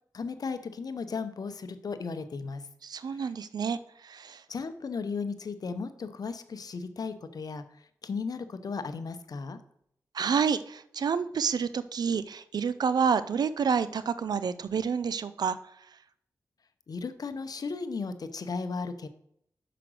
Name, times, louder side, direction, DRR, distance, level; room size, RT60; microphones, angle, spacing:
voice 1, 0.1-2.7 3.1-3.3 4.5-7.6 8.0-9.6 16.9-19.1, left 4 dB, 60° left, 11 dB, 0.7 m, -35 dB
voice 2, 2.8-3.8 4.0-4.4 10.1-15.6, right 6 dB, 70° right, 15 dB, 0.5 m, -28 dB
5.9 x 5.0 x 6.3 m, 0.71 s
cardioid pair, 45°, 7 cm